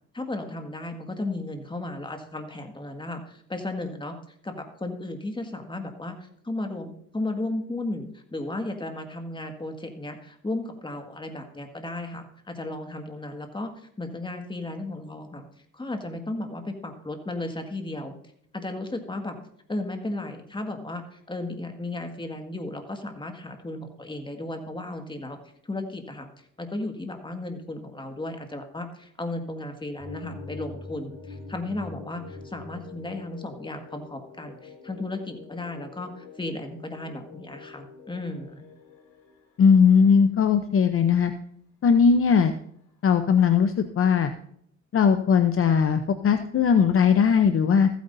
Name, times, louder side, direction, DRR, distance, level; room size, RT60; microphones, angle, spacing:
voice 1, 0.1-4.2 4.4-15.4 15.7-18.1 18.5-19.3 19.7-25.4 25.6-26.3 26.6-38.7, left 2 dB, 15° left, 5 dB, 1.8 m, -34 dB
sound 1, 30.0-39.4, left 3 dB, 80° left, 4.9 m, -44 dB
voice 2, 39.6-41.3 41.8-42.5 43.0-44.3 44.9-47.9, left 6 dB, 45° left, 9 dB, 0.7 m, -19 dB
15.0 x 9.3 x 2.7 m, 0.69 s
cardioid pair, 90°, 30 cm